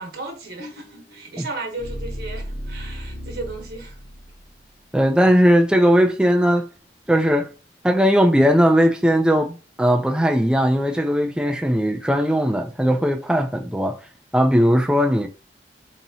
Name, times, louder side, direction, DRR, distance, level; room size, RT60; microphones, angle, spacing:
voice 1, 0.0-4.0, right 2 dB, 65° right, 1.1 m, -35 dB
sound 1, 0.6-4.7, equal, 50° left, 1.5 m, -35 dB
voice 2, 4.9-6.7 7.1-7.5 7.8-14.0 14.3-15.3, equal, 5° right, 0.4 m, -18 dB
4.1 x 2.9 x 2.8 m
head